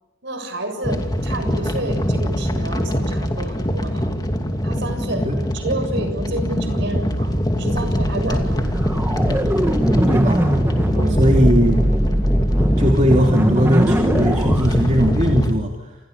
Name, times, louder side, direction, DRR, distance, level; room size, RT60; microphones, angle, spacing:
voice 1, 0.2-4.1 4.6-5.3 5.5-7.3 7.6-8.7 10.9-11.2, right 1 dB, 60° right, 7 dB, 7.2 m, -29 dB
sound 1, 0.8-15.5, equal, 20° left, 2.7 m, -23 dB
sound 2, 7.6-15.3, equal, 10° right, 2.2 m, -21 dB
voice 2, 10.1-10.5 11.2-11.8 12.8-16.0, equal, 35° right, 1 dB, 3.1 m, -18 dB
29.5 x 29.0 x 6.9 m, 0.99 s
head